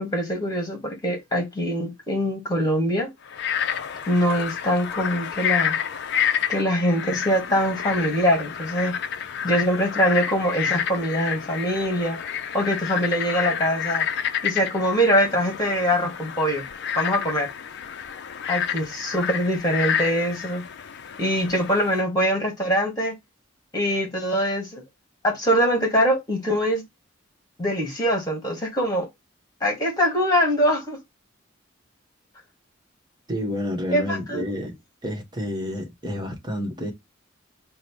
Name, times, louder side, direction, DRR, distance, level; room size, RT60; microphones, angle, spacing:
voice 1, 0.0-3.1 4.1-5.8 6.5-9.0 9.4-14.1 14.4-16.6 17.0-17.5 18.5-20.6 21.2-23.2 23.7-24.8 25.2-26.8 27.6-29.1 29.6-31.0 33.9-34.7, equal, 20° left, 1.9 m, -23 dB
Frog, 3.3-22.0, left 8 dB, 55° left, 0.4 m, -29 dB
voice 2, 33.3-34.7 35.0-36.9, left 1 dB, 20° right, 1.1 m, -29 dB
4.8 x 2.1 x 4.5 m
head